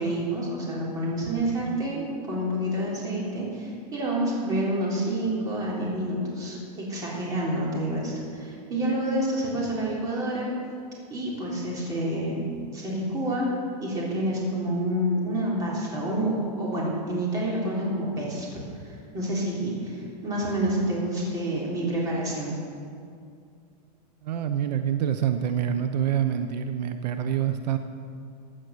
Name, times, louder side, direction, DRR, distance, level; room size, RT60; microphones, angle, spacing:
voice 1, 0.0-10.5 11.1-12.4 12.7-13.5 13.8-22.5, right 1 dB, 15° right, -5 dB, 3.5 m, -28 dB
voice 2, 24.2-27.8, right 9 dB, 75° right, 8 dB, 0.9 m, -26 dB
16.5 x 10.0 x 6.4 m, 2.3 s
supercardioid pair, 175°, 21 cm